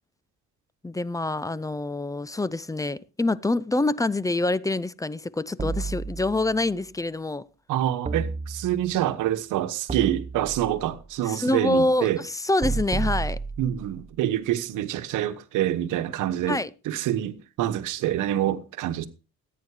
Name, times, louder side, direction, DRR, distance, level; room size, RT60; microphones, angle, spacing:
voice 1, 0.8-7.5 11.2-13.4 16.5-16.7, left 2 dB, 10° left, 0.6 m, -26 dB
sound 1, 5.6-6.7 8.1-9.0 9.9-11.0 12.6-14.0, right 4 dB, 20° right, 0.8 m, -31 dB
voice 2, 7.7-12.2 13.6-16.6 16.8-19.1, right 12 dB, 90° right, 1.2 m, -26 dB
14.0 x 9.3 x 4.9 m
cardioid pair, 90°, 30 cm